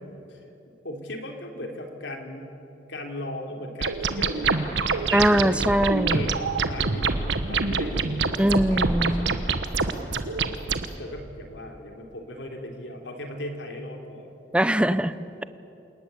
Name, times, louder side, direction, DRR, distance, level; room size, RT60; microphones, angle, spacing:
voice 1, 0.8-2.5 2.9-6.4 6.7-9.4 10.2-14.3, left 1 dB, 85° left, 3 dB, 3.4 m, -38 dB
sound 1, 3.8-10.9, right 4 dB, 80° right, 1.3 m, -26 dB
voice 2, 5.1-6.3 8.4-9.4 14.5-15.1, right 1 dB, 5° right, 14 dB, 0.6 m, -22 dB
28.0 x 19.0 x 8.3 m, 2.9 s
head